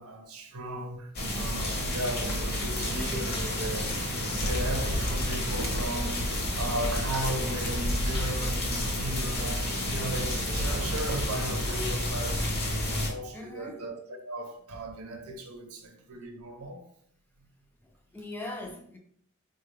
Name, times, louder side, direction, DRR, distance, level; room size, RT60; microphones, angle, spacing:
voice 1, 0.0-12.5 12.9-16.9, right 1 dB, 85° right, 0.6 m, -37 dB
sound 1, 1.1-13.1, left 1 dB, 45° left, 1.0 m, -30 dB
sound 2, 3.2-4.6 5.0-6.6 7.2-7.8 8.2-9.9 10.6-10.7 11.3-11.7 12.6-12.7, left 2 dB, 75° left, 0.8 m, -40 dB
sound 3, 4.2-11.3, right 1 dB, 45° right, 0.8 m, -36 dB
voice 2, 13.3-13.9 18.1-19.0, left 2 dB, 10° left, 0.5 m, -40 dB
4.2 x 2.2 x 3.2 m
head